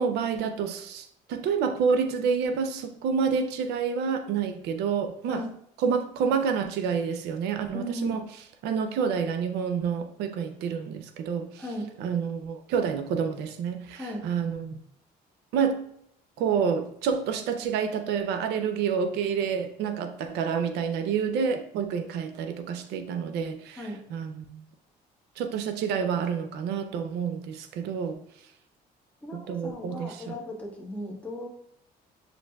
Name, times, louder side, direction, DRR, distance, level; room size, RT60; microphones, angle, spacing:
voice 1, 0.0-5.4 5.8-8.3 8.6-11.6 12.0-14.8 15.5-15.8 16.4-24.6 25.4-28.2 29.3-30.4, right 6 dB, 80° right, 8 dB, 0.5 m, -28 dB
voice 2, 7.7-8.2 11.6-11.9 13.9-14.3 23.8-24.0 29.2-31.5, left 1 dB, 10° left, -3 dB, 1.4 m, -36 dB
7.6 x 2.5 x 2.2 m, 0.69 s
cardioid pair, 110°, 17 cm